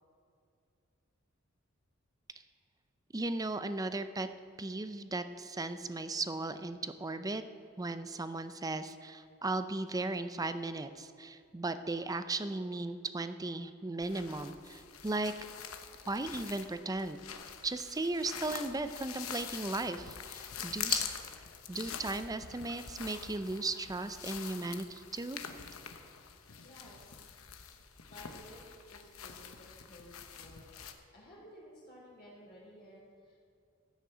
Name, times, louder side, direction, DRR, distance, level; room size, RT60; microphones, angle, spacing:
voice 1, 3.1-4.3 4.6-7.4 7.8-15.3 16.1-17.2 17.6-21.1 21.7-25.4, right 2 dB, 20° right, 10 dB, 0.5 m, -36 dB
sound 1, 14.0-30.9, left 8 dB, 85° left, 1.0 m, -44 dB
voice 2, 26.5-27.2 28.1-30.6 30.9-33.4, equal, 50° left, -6 dB, 3.6 m, -55 dB
15.0 x 6.5 x 7.9 m, 2.4 s
head